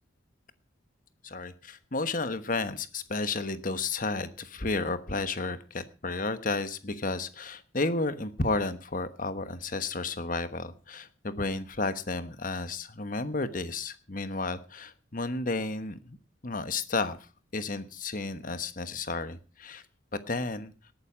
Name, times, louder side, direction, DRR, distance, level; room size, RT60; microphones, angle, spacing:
voice 1, 1.2-16.2 16.4-17.2 17.5-19.8 20.1-20.7, left 3 dB, 45° left, 11 dB, 1.2 m, -32 dB
18.5 x 9.2 x 5.1 m, 0.34 s
head